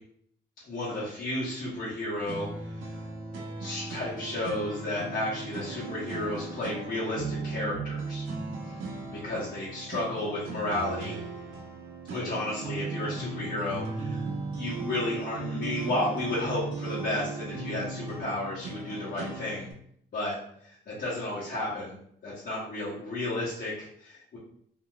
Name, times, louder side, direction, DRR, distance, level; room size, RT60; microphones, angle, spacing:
voice 1, 0.7-3.0 3.6-8.2 9.1-11.2 12.1-14.2 14.5-19.7 20.1-20.4 20.6-21.9 22.2-24.4, left 1 dB, 50° left, -10 dB, 1.2 m, -32 dB
sound 1, 2.3-19.7, right 3 dB, 85° right, 0.7 m, -37 dB
3.0 x 2.8 x 2.2 m, 0.66 s
cardioid pair, 90°, 20 cm